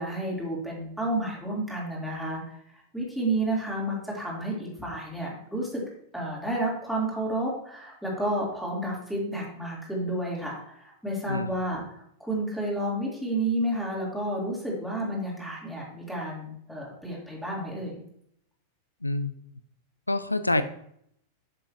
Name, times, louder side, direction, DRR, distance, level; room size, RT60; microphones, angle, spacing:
voice 1, 0.0-2.4 2.9-5.8 6.1-18.0, right 1 dB, ahead, -4 dB, 3.7 m, -31 dB
voice 2, 19.0-19.3 20.1-20.6, left 2 dB, 85° left, 13 dB, 0.4 m, -26 dB
11.5 x 7.5 x 3.0 m, 0.71 s
figure-of-eight pair, 90°, 0 cm